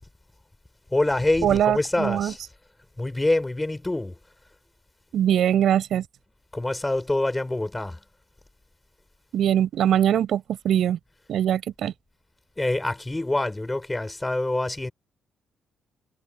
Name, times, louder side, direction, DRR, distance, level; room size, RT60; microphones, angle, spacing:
voice 1, 0.9-2.4 3.0-4.1 6.5-8.0 12.6-14.9, left 2 dB, 15° left, 7.1 m, -25 dB
voice 2, 1.4-2.3 5.1-6.0 9.3-11.0 11.3-11.9, right 10 dB, 70° right, 5.9 m, -22 dB
cardioid pair, 90°, 0 cm